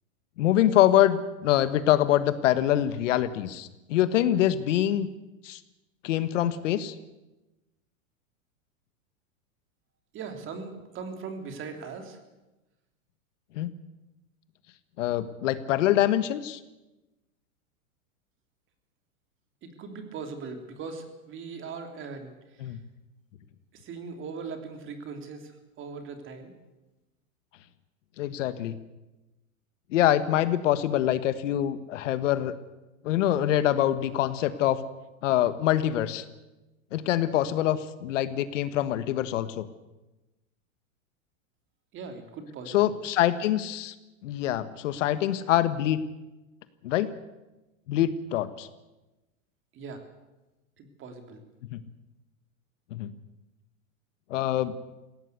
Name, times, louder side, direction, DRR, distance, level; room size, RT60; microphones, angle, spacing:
voice 1, 0.4-5.1 5.4-5.6 6.0-6.9 13.6-13.7 15.0-16.6 22.6-22.8 28.2-28.7 29.9-32.5 33.0-34.8 35.2-36.2 36.9-39.7 42.7-43.9 44.2-46.0 46.8-47.1 47.9-48.7 51.7-51.8 52.9-53.1 54.3-54.7, left 12 dB, 65° left, 13 dB, 1.4 m, -25 dB
voice 2, 10.1-12.2 19.6-22.3 22.6-22.8 23.8-26.5 41.9-42.9 49.7-50.0 50.8-51.4, right 5 dB, 30° right, 5 dB, 3.1 m, -40 dB
20.0 x 17.0 x 8.2 m, 1.0 s
hypercardioid pair, 135°, 41 cm